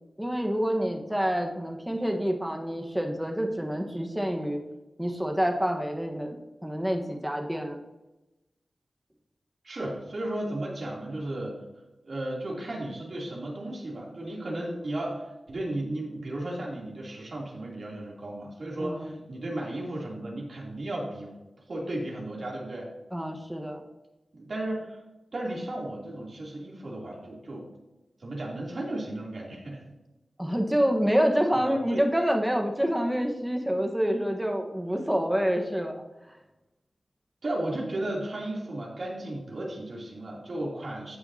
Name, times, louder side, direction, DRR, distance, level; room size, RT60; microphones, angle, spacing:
voice 1, 0.2-4.6 5.0-6.4 6.6-7.8 18.8-19.2 23.1-23.8 30.4-36.0, equal, 10° right, 2 dB, 1.3 m, -27 dB
voice 2, 9.6-11.6 12.0-21.3 21.7-22.9 24.3-25.0 25.3-27.7 28.2-29.8 31.5-32.0 37.4-41.2, right 1 dB, 60° right, -3 dB, 3.0 m, -34 dB
16.5 x 5.7 x 2.8 m, 1.0 s
wide cardioid pair, 70°, 0 cm